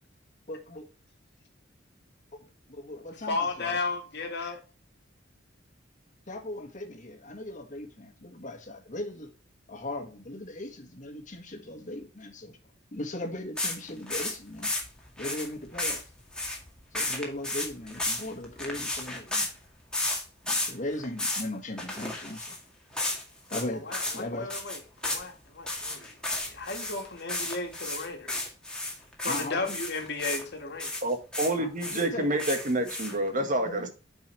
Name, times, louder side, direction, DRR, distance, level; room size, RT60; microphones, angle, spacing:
voice 1, 0.5-0.8 2.7-3.8 6.3-9.3 9.7-12.6 12.9-14.7 15.2-16.0 16.9-19.5 20.4-22.6 23.5-23.9 24.1-24.5 29.2-29.8 31.6-32.3 33.6-33.9, left 1 dB, 40° left, 1.8 m, -38 dB
voice 2, 3.3-4.6 23.8-28.5 29.2-30.9, left 3 dB, 60° left, 2.0 m, -34 dB
sound 1, 13.6-19.5 19.9-20.7 21.0-21.4 21.8-22.6 22.9-23.2 23.5-23.6 23.9-24.2 24.5-25.3 25.7-30.4 30.8-31.5 31.8-33.3, left 2 dB, 5° left, 2.0 m, -32 dB
voice 3, 31.0-33.9, right 1 dB, 45° right, 1.6 m, -28 dB
9.0 x 5.5 x 3.3 m
head